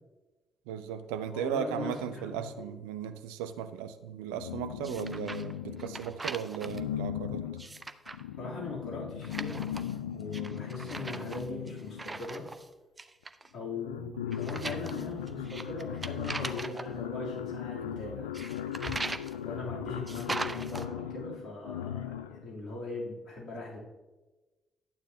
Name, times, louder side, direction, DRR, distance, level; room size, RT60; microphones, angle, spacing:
voice 1, 0.7-7.5, right 9 dB, 70° right, 11 dB, 0.5 m, -36 dB
voice 2, 1.3-2.6 8.4-9.7 10.1-12.5 13.5-18.3 19.4-23.8, left 2 dB, 55° left, -4 dB, 2.9 m, -40 dB
sound 1, 4.4-6.2 6.6-12.3 13.2-13.3 13.6-22.5, left 10 dB, 80° left, 0.3 m, -38 dB
sound 2, 4.8-5.5 5.8-6.8 7.4-8.2 9.2-10.0 10.3-12.7 13.0-13.5 14.3-16.9 18.3-19.4 20.1-20.9, right 3 dB, 25° right, 0.6 m, -39 dB
12.0 x 9.1 x 2.7 m, 1.1 s
figure-of-eight pair, 40°, 0 cm